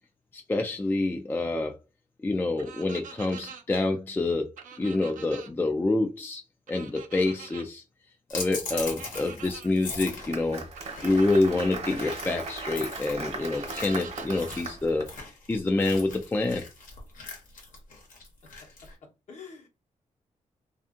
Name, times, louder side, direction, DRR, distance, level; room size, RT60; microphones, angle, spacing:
voice 1, 0.3-1.8 2.2-6.4 6.7-7.8 8.3-10.6 11.0-15.1 15.5-16.6, left 2 dB, 15° left, 0.3 m, -27 dB
sound 1, 2.6-3.6 4.6-5.5 6.7-7.7 8.7-9.7 10.7-11.6 13.4-14.6, right 7 dB, 75° right, 0.5 m, -45 dB
sound 2, 8.3-18.9, left 3 dB, 85° left, 1.0 m, -40 dB
Applause, 9.9-15.1, right 3 dB, 50° right, 0.9 m, -38 dB
voice 2, 18.4-19.7, left 5 dB, 60° left, 0.9 m, -49 dB
2.5 x 2.5 x 2.4 m
cardioid pair, 95°, 13 cm